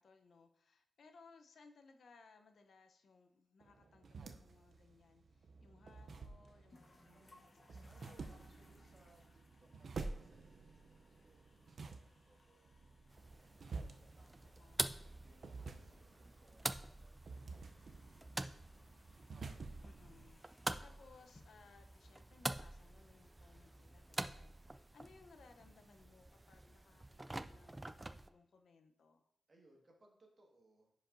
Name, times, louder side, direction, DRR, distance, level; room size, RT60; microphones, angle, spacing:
voice 1, 0.0-7.5 8.0-8.6 14.6-15.1 19.8-29.3, left 4 dB, 75° left, 6 dB, 0.7 m, -65 dB
sound 1, 3.6-20.3, right 4 dB, 60° right, 0.6 m, -51 dB
sound 2, 6.7-25.6, left 2 dB, 35° left, 1.0 m, -70 dB
voice 2, 7.0-13.0 13.7-18.8 19.3-19.6 23.8-24.3 29.5-30.9, right 2 dB, 40° right, 0 dB, 1.7 m, -71 dB
sound 3, 13.1-28.3, right 2 dB, 20° right, 0.3 m, -47 dB
10.0 x 5.1 x 2.6 m, 0.79 s
wide cardioid pair, 130°, 0 cm